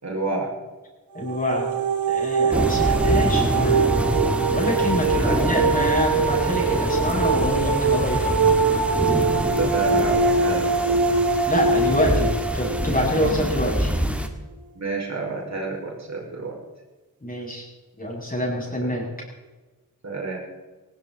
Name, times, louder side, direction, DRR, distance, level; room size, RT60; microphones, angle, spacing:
voice 1, 0.0-0.5 5.1-5.4 9.3-10.9 14.7-16.5 18.8-18.9 20.0-20.4, right 3 dB, 50° right, -2 dB, 5.7 m, -30 dB
voice 2, 1.1-1.7 2.1-4.1 4.5-8.4 11.5-13.9 17.2-17.6 18.0-19.1, left 1 dB, 25° left, -2 dB, 7.6 m, -26 dB
sound 1, 1.2-14.0, right 4 dB, 90° right, 1.6 m, -23 dB
sound 2, 2.5-14.3, equal, 5° right, 2.2 m, -26 dB
19.0 x 17.5 x 4.2 m, 1.2 s
cardioid pair, 65°, 34 cm